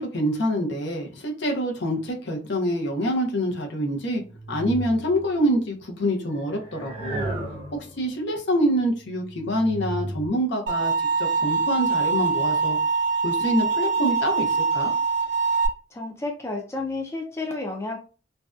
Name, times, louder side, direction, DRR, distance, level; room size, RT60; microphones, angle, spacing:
voice 1, 0.0-4.2 4.5-7.3 7.7-10.9 11.2-12.8 13.2-14.9, equal, 70° left, 1 dB, 0.6 m, -26 dB
sound 1, 4.1-5.5 6.4-8.2 8.8-10.3, right 1 dB, 30° right, 0.6 m, -35 dB
sound 2, 10.7-15.7, right 4 dB, 85° right, 0.5 m, -23 dB
voice 2, 15.9-18.0, left 2 dB, 15° left, 1 dB, 0.3 m, -31 dB
2.6 x 2.1 x 2.3 m, 0.35 s
head